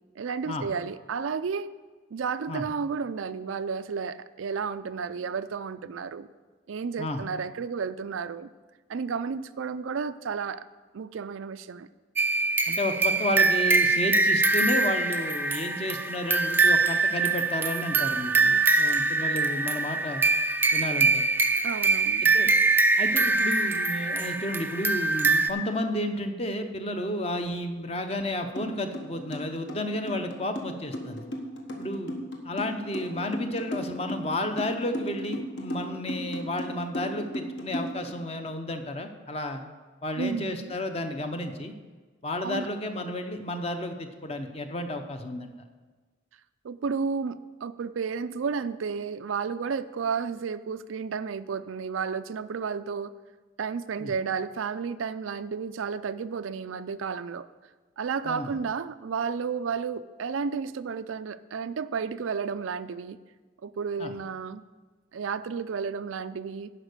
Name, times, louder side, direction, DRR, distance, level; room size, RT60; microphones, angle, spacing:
voice 1, 0.2-1.7 2.1-6.3 6.7-8.5 8.9-10.7 10.9-11.9 21.6-22.2 40.2-40.7 42.4-42.7 46.6-53.1 53.6-57.5 58.0-63.2 63.6-64.6 65.1-66.7, right 5 dB, 90° right, 13 dB, 0.4 m, -32 dB
sound 1, 12.2-25.5, right 3 dB, 10° right, 0.3 m, -23 dB
voice 2, 12.7-20.2 20.7-21.2 22.2-22.5 23.0-31.3 31.8-39.6 40.0-41.7 42.2-45.5 54.0-54.1 58.2-58.5 64.0-64.1, left 1 dB, 30° left, 6 dB, 0.7 m, -32 dB
sound 2, 28.6-28.7 28.9-38.1, equal, 60° left, 1.4 m, -34 dB
11.0 x 5.4 x 6.6 m, 1.4 s
head